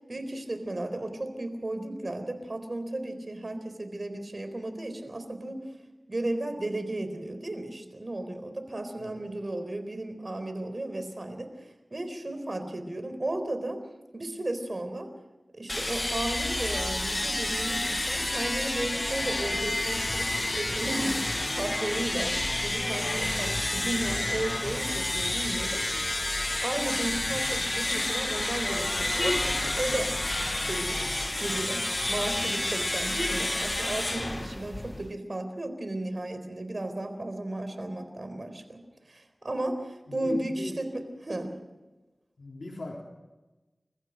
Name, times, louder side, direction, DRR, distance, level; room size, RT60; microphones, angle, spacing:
voice 1, 0.1-5.6 6.1-13.8 14.1-15.1 15.5-25.8 26.6-30.1 30.6-38.8 39.1-41.5, right 1 dB, 55° right, 8 dB, 4.0 m, -34 dB
sound 1, 15.7-35.2, left 1 dB, 35° left, 0.7 m, -29 dB
voice 2, 40.1-40.8 42.4-43.0, left 2 dB, 80° left, -1 dB, 3.6 m, -37 dB
28.5 x 15.0 x 6.6 m, 1.1 s
wide cardioid pair, 45°, 0 cm